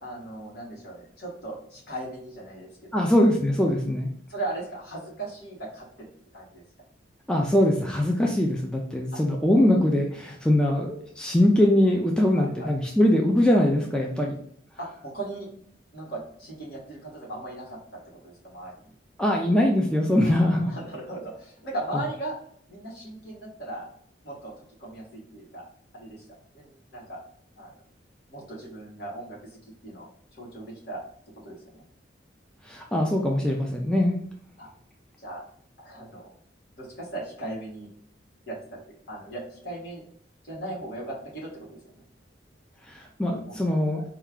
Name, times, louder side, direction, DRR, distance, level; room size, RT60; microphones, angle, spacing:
voice 1, 0.0-3.0 4.3-6.1 6.3-6.6 9.1-9.2 12.3-12.7 14.8-15.5 15.9-17.8 18.0-18.9 20.2-20.3 20.7-22.3 22.7-23.9 24.2-24.5 24.8-25.7 25.9-26.2 26.5-27.2 27.6-27.7 28.3-31.0 31.4-31.8 34.6-34.7 35.2-35.4 35.8-36.2 36.8-37.9 38.5-38.6 39.1-40.0 40.4-41.8 43.5-43.6 43.9-44.0, right 2 dB, 55° left, -4 dB, 1.5 m, -38 dB
voice 2, 2.9-4.1 7.3-14.4 19.2-20.7 32.7-34.2 42.9-44.0, left 1 dB, 5° left, -1 dB, 0.4 m, -22 dB
4.3 x 2.4 x 3.6 m, 0.65 s
head